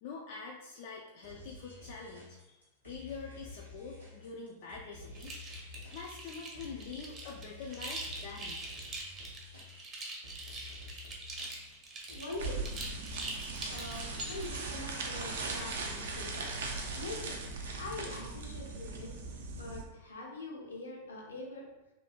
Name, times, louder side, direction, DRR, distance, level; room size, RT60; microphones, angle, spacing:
voice 1, 0.0-5.4 5.9-8.6, left 5 dB, 50° left, -1 dB, 0.3 m, -45 dB
sound 1, 1.2-16.0, left 2 dB, 90° right, 0.8 m, -50 dB
sound 2, 5.1-14.6, right 2 dB, 25° right, 0.6 m, -43 dB
voice 2, 12.1-12.6 13.7-16.3 16.9-17.4 17.7-19.1 19.5-21.7, left 2 dB, 75° left, -2 dB, 0.7 m, -43 dB
sound 3, 12.4-19.8, right 3 dB, 60° right, 0.4 m, -39 dB
3.1 x 2.6 x 2.3 m, 1.0 s
figure-of-eight pair, 90°, 0 cm